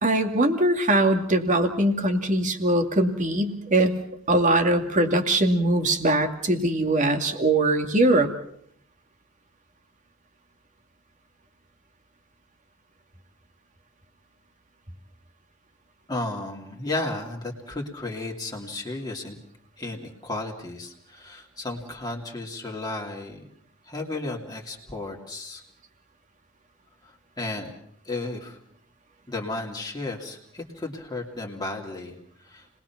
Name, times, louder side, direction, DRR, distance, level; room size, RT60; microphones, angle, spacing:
voice 1, 0.0-3.9 4.3-8.3, right 1 dB, 35° right, 6 dB, 2.4 m, -21 dB
voice 2, 16.1-19.4 19.8-23.4 23.9-25.6 27.0-27.8 28.0-28.6 29.3-32.2 32.4-32.7, left 2 dB, 20° left, 0 dB, 2.7 m, -33 dB
30.0 x 21.0 x 6.0 m, 0.68 s
head